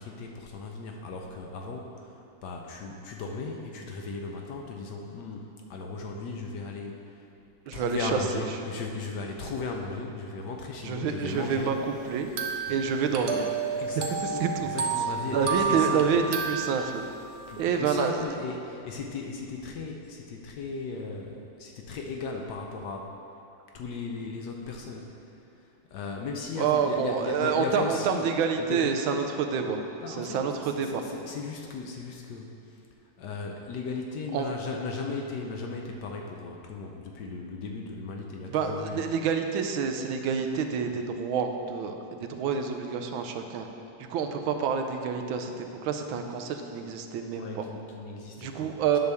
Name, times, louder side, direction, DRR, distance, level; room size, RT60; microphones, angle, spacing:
voice 1, 0.0-7.3 7.7-11.8 12.7-12.8 13.8-16.2 17.5-23.2 23.7-28.3 28.6-29.3 30.0-39.1 47.3-49.0, left 3 dB, 70° left, 1 dB, 1.1 m, -37 dB
voice 2, 7.7-8.2 10.8-11.8 12.1-12.3 12.7-13.8 14.4-14.7 15.3-17.0 17.6-18.2 26.6-29.8 30.1-31.0 34.3-34.5 38.5-43.7 44.1-47.7 48.4-49.0, right 6 dB, 85° right, 5 dB, 1.4 m, -28 dB
sound 1, 12.4-17.3, right 6 dB, 65° right, 1.1 m, -31 dB
9.4 x 6.7 x 3.5 m, 2.7 s
omnidirectional pair, 2.2 m